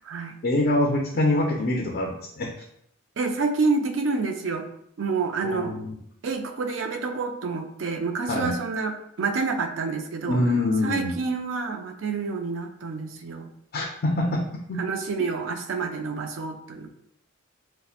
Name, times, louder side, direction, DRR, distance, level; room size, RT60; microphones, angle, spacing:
voice 1, 0.4-2.5 5.4-5.9 8.3-8.6 10.3-11.1 13.7-14.4 14.7-14.9, left 1 dB, 50° left, 0 dB, 0.4 m, -24 dB
voice 2, 3.2-4.7 5.0-5.8 6.2-10.4 10.8-13.5 14.2-14.4 14.8-16.9, right 4 dB, 60° right, 5 dB, 0.4 m, -28 dB
5.4 x 2.1 x 2.4 m, 0.73 s
head